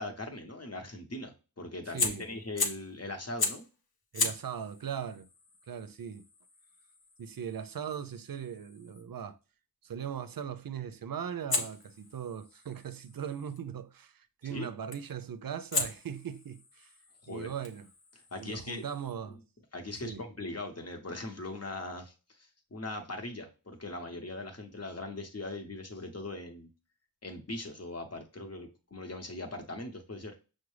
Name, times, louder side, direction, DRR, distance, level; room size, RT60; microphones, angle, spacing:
voice 1, 0.0-3.7 14.4-14.7 17.2-17.5 18.3-18.8 19.3-19.4 19.7-26.7 27.2-30.4, left 2 dB, 45° left, 1.0 m, -40 dB
voice 2, 1.9-2.2 4.1-5.3 5.7-6.2 7.2-9.4 9.8-16.9 17.3-17.9 18.4-19.4 20.0-20.2, right 8 dB, 70° right, 0.5 m, -39 dB
Fire, 2.0-2.9 3.4-3.7 4.1-9.1 11.5-13.6 14.9-15.2 15.7-19.1, left 3 dB, 85° left, 0.8 m, -37 dB
6.0 x 2.2 x 3.2 m
wide cardioid pair, 45°, 36 cm